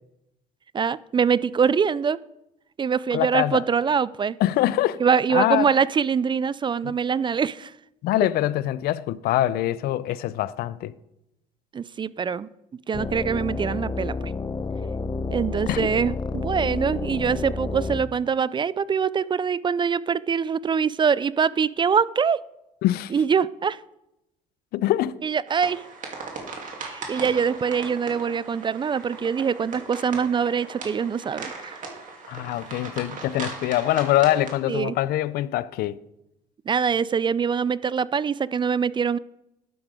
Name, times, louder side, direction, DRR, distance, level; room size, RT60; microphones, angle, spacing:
voice 1, 0.7-2.2 2.8-4.4 5.0-7.7 11.7-12.5 12.9-14.3 15.3-22.4 23.1-23.8 25.2-25.8 26.8-31.8 34.7-35.0 36.7-39.2, right 6 dB, 30° right, 0.4 m, -24 dB
voice 2, 3.1-3.6 4.4-5.0 5.3-5.7 6.8-6.9 8.0-10.9 15.7-15.9 22.8-23.1 24.7-25.2 32.3-36.0, left 14 dB, 65° left, 0.5 m, -24 dB
sound 1, 12.9-18.1, left 4 dB, 25° left, 0.7 m, -30 dB
sound 2, 25.5-34.5, right 4 dB, 50° right, 2.9 m, -38 dB
12.0 x 8.7 x 3.7 m
supercardioid pair, 70°, 17 cm